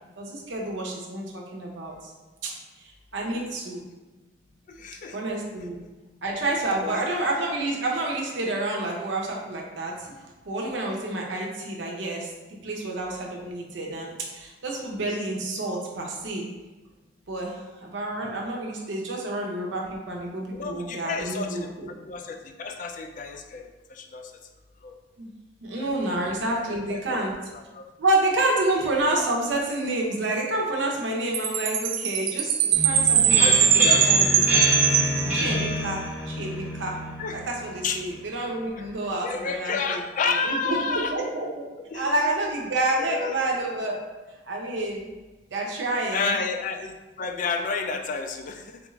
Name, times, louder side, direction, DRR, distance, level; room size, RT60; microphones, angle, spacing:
voice 1, 0.2-2.1 2.4-2.5 3.1-3.8 5.1-5.8 6.2-9.9 10.4-12.3 12.6-16.5 17.3-21.9 25.2-25.3 25.6-27.3 28.0-34.4 35.3-37.0 37.3-40.0 40.4-41.7 41.9-44.0 44.5-45.1 45.5-46.3, right 2 dB, 90° right, -1 dB, 0.7 m, -29 dB
voice 2, 4.7-5.2 6.8-7.1 20.5-24.3 24.8-24.9 25.7-26.2 26.7-27.3 27.5-27.9 33.4-34.3 37.2-37.4 37.8-38.0 38.8-38.9 39.2-41.2 41.9-42.1 43.0-43.5 46.1-48.8, left 4 dB, 45° left, 5 dB, 0.3 m, -31 dB
Chime, 31.3-35.8, right 8 dB, 55° right, 0.3 m, -21 dB
sound 1, 32.7-38.3, equal, 10° right, 0.7 m, -28 dB
3.5 x 2.4 x 3.1 m, 1.2 s
head